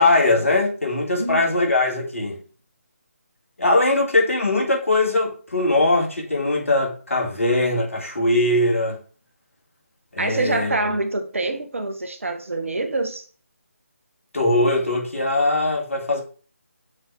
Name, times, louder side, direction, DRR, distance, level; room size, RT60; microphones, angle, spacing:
voice 1, 0.0-2.4 3.6-9.0 10.2-10.7 14.3-16.2, left 2 dB, 65° left, 2.1 m, -20 dB
voice 2, 10.2-13.2, right 2 dB, 65° right, 1.2 m, -26 dB
6.4 x 3.7 x 4.6 m
figure-of-eight pair, 155°, 8 cm